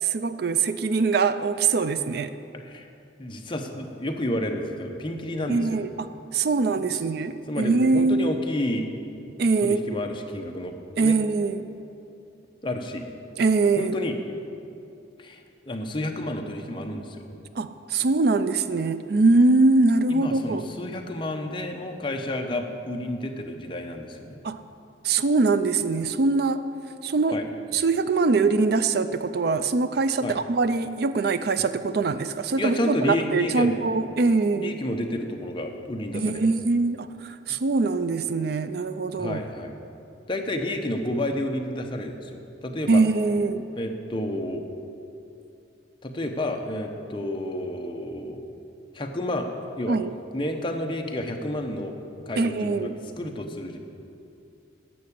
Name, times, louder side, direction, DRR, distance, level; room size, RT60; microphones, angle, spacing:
voice 1, 0.0-2.4 5.5-8.2 9.4-9.8 11.0-11.7 13.4-13.9 17.6-20.6 24.4-24.6 25.0-26.6 27.0-27.4 27.7-34.7 36.1-39.4 42.9-43.7 49.9-50.1 52.4-53.0, right 3 dB, 55° right, 12 dB, 0.4 m, -23 dB
voice 2, 2.5-2.9 3.2-5.8 6.7-6.8 7.5-8.9 9.6-11.2 12.6-13.1 13.8-14.2 15.2-17.3 20.1-24.4 27.3-27.5 30.2-30.4 32.6-33.8 34.5-36.5 39.1-39.7 40.3-43.0 43.7-44.6 46.0-48.4 48.9-49.5 49.8-50.0 50.3-51.9 52.3-52.9 53.2-53.8, left 1 dB, 25° left, 3 dB, 0.9 m, -30 dB
11.5 x 6.9 x 8.5 m, 2.6 s
head